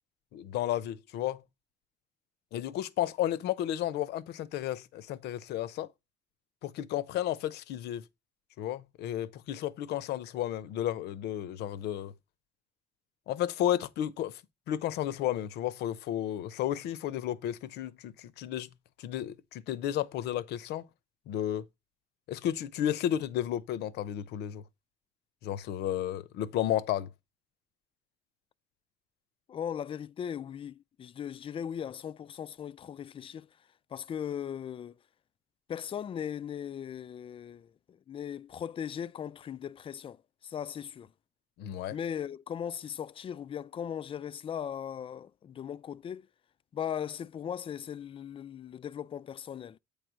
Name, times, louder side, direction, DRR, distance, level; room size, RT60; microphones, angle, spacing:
voice 1, 0.3-1.4 2.5-5.9 6.6-8.0 8.6-12.1 13.3-14.4 14.7-18.7 19.0-20.8 21.3-21.6 22.3-24.6 25.4-27.1 41.6-42.0, left 11 dB, 80° left, 0.7 m, -32 dB
voice 2, 29.5-33.5 33.9-35.0 35.7-41.1 41.9-46.3 46.7-49.8, left 8 dB, 30° left, 0.4 m, -38 dB
8.6 x 3.2 x 6.1 m
cardioid pair, 110°, 17 cm